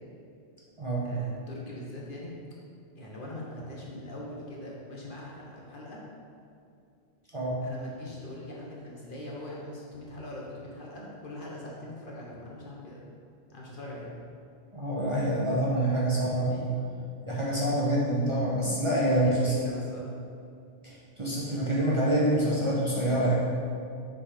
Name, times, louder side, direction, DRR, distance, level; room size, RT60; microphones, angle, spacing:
voice 1, 1.0-2.4 3.0-6.0 7.6-13.0 13.5-14.1 16.1-16.7 19.1-20.1, left 1 dB, 45° left, -4 dB, 1.0 m, -42 dB
voice 2, 14.7-16.5 17.2-19.5 20.8-23.3, right 1 dB, 30° right, -7 dB, 0.9 m, -26 dB
6.1 x 4.0 x 4.9 m, 2.5 s
omnidirectional pair, 1.3 m